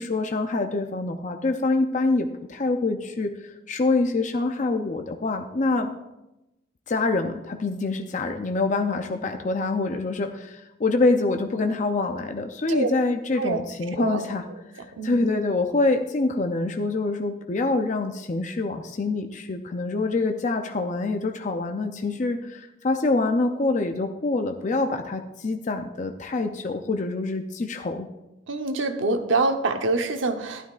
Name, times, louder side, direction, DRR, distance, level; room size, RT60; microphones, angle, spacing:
voice 1, 0.0-3.3 3.7-5.9 6.9-14.4 14.7-28.1, left 3 dB, 40° left, 5 dB, 0.5 m, -25 dB
voice 2, 28.5-30.7, right 3 dB, 85° right, 6 dB, 0.9 m, -25 dB
12.5 x 11.5 x 2.4 m, 0.95 s
head